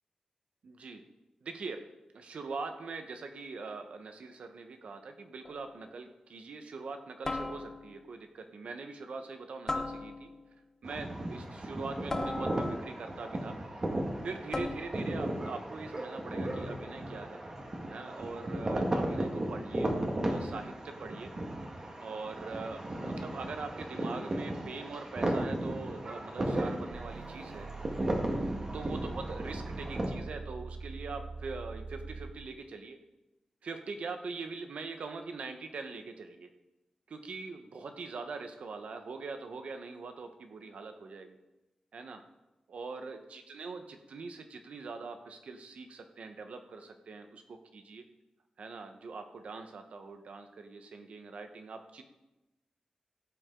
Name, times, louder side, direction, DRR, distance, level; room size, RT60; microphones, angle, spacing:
voice 1, 0.6-1.0 1.4-1.8 2.1-10.3 10.8-13.5 14.2-17.4 17.9-19.9 20.2-21.3 22.0-27.7 28.7-33.0 33.6-36.5 37.1-41.4 41.9-42.2 42.7-48.0 48.6-52.0, right 4 dB, 85° right, 6 dB, 1.2 m, -42 dB
sound 1, 5.4-5.8 7.2-8.0 9.7-10.5 12.1-13.0 14.5-15.1, left 2 dB, 30° left, 0.8 m, -37 dB
sound 2, 10.8-30.1, right 1 dB, 35° right, 1.7 m, -35 dB
sound 3, 26.9-32.5, right 4 dB, 65° right, 0.9 m, -43 dB
15.5 x 8.3 x 3.8 m, 0.99 s
wide cardioid pair, 155°, 2 cm